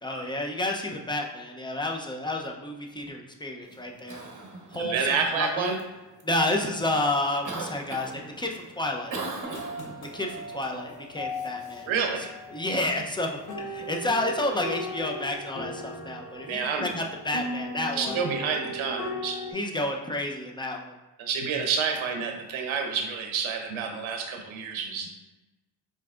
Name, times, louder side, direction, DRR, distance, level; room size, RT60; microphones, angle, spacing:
voice 1, 0.0-4.2 4.7-5.7 6.2-9.1 10.1-11.9 12.5-18.2 19.5-20.9, left 1 dB, 10° left, 1 dB, 0.5 m, -30 dB
Cough, 3.6-18.1, right 3 dB, 40° right, 0.9 m, -44 dB
voice 2, 4.7-5.8 11.9-12.3 16.5-16.9 17.9-19.4 21.2-25.1, right 6 dB, 70° right, 3 dB, 0.8 m, -29 dB
sound 1, 9.4-19.5, left 1 dB, 45° left, 0.9 m, -38 dB
4.5 x 2.8 x 2.4 m, 1.1 s
supercardioid pair, 60°, 50 cm